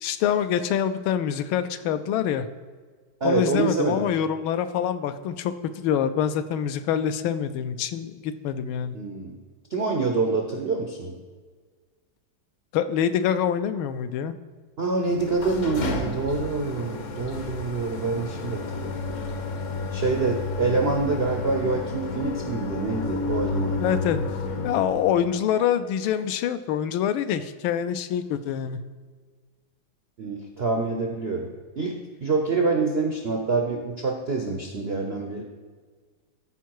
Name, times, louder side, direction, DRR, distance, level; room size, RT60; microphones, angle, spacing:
voice 1, 0.0-2.5 3.2-9.0 12.7-14.3 23.8-24.2 24.6-28.8, left 9 dB, 80° left, 10 dB, 1.3 m, -25 dB
voice 2, 3.2-4.1 8.9-9.4 9.7-11.1 14.8-19.0 19.9-24.0 30.2-31.5 31.8-31.9 32.2-35.4, right 3 dB, 85° right, 2 dB, 0.5 m, -26 dB
sound 1, 15.0-25.4, left 3 dB, 55° left, 0.9 m, -31 dB
14.0 x 4.6 x 4.6 m, 1.5 s
omnidirectional pair, 2.3 m